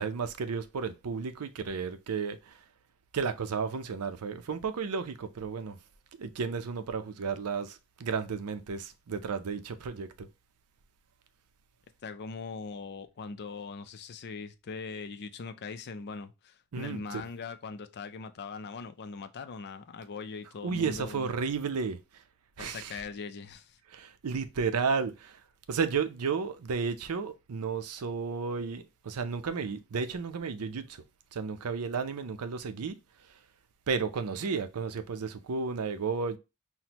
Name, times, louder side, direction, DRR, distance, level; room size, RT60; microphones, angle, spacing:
voice 1, 0.0-2.6 3.1-5.8 6.1-10.3 16.7-17.2 20.6-22.2 22.6-23.0 23.9-25.4 25.7-31.0 31.3-33.0 33.9-36.4, right 5 dB, 80° right, 0.5 m, -33 dB
voice 2, 12.0-21.3 22.6-23.8, left 4 dB, 50° left, 0.4 m, -41 dB
5.9 x 2.1 x 2.8 m
head